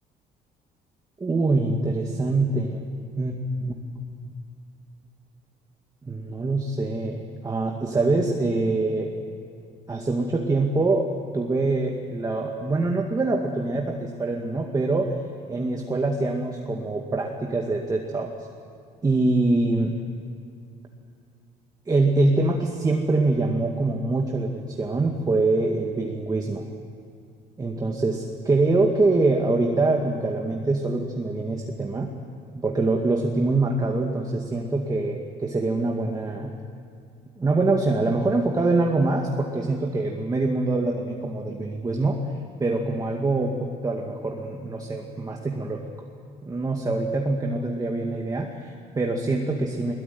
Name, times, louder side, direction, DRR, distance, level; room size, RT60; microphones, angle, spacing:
voice 1, 1.2-2.8 3.2-3.3 3.6-3.7 4.2-4.3 6.0-9.1 9.9-15.1 15.5-18.3 19.0-19.9 21.9-26.7 27.6-32.1 32.5-36.5 37.4-42.2 42.6-45.9 46.4-49.9, right 2 dB, 20° right, 1 dB, 2.1 m, -24 dB
22.0 x 21.0 x 9.5 m, 2.4 s
cardioid pair, 110°, 17 cm